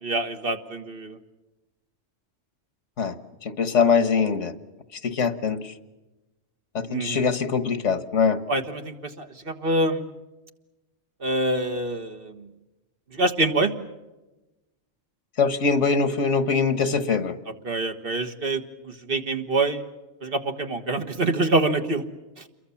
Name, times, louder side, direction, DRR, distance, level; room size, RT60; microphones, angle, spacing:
voice 1, 0.0-1.2 6.9-7.3 8.5-10.0 11.2-12.5 13.1-13.7 17.7-19.8 20.2-22.0, right 2 dB, 50° right, 6 dB, 1.7 m, -26 dB
voice 2, 3.4-4.5 4.9-5.7 6.7-8.4 15.4-17.4, left 5 dB, 75° left, 13 dB, 1.7 m, -23 dB
28.5 x 23.0 x 7.2 m, 1.1 s
omnidirectional pair, 1.3 m